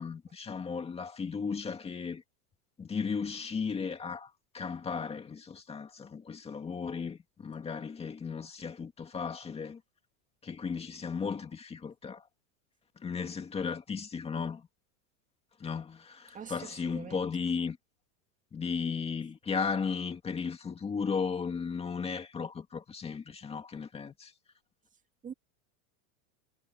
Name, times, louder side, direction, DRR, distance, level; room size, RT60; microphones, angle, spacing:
voice 1, 0.0-2.2 2.8-9.8 10.4-12.3 13.0-14.7 15.6-17.8 18.5-24.3, left 5 dB, 15° left, 2.2 m, -35 dB
voice 2, 16.3-17.3 25.2-25.3, right 7 dB, 15° right, 2.1 m, -44 dB
supercardioid pair, 160°, 44 cm